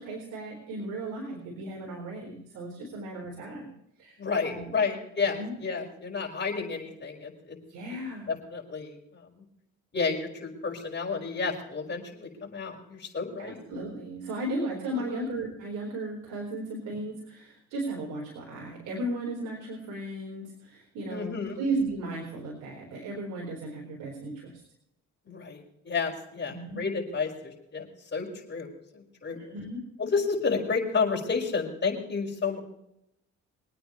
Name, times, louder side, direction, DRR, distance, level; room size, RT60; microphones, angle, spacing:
voice 1, 0.0-3.7 4.0-4.2 4.4-4.8 5.4-5.6 7.7-8.3 13.4-24.6 26.5-26.8 29.4-29.8, right 2 dB, 90° right, 0 dB, 4.3 m, -35 dB
voice 2, 4.2-7.6 8.5-9.3 9.9-13.6 14.9-15.2 21.1-21.6 25.3-29.4 30.0-32.6, left 5 dB, 35° left, 0 dB, 5.2 m, -31 dB
25.0 x 9.3 x 3.1 m, 0.78 s
cardioid pair, 90°, 30 cm